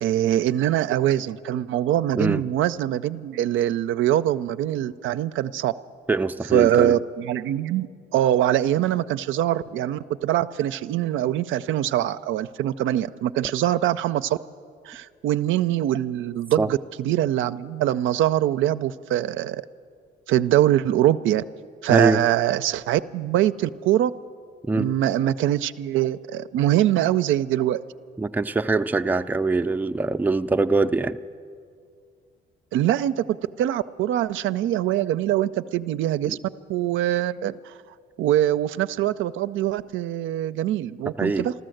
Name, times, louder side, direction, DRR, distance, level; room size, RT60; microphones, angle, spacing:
voice 1, 0.0-5.7 6.5-7.9 8.1-14.4 14.8-19.6 20.3-21.4 21.8-24.1 24.7-27.8 32.7-33.2 33.6-36.4 36.7-37.7 38.2-41.5, right 12 dB, 80° right, 12 dB, 0.4 m, -23 dB
voice 2, 6.1-7.0 16.6-16.7 21.9-22.2 24.7-24.9 28.2-31.2 36.2-36.4 41.2-41.5, right 3 dB, 10° right, 8 dB, 0.4 m, -23 dB
13.5 x 13.5 x 7.7 m, 2.2 s
cardioid pair, 90°, 20 cm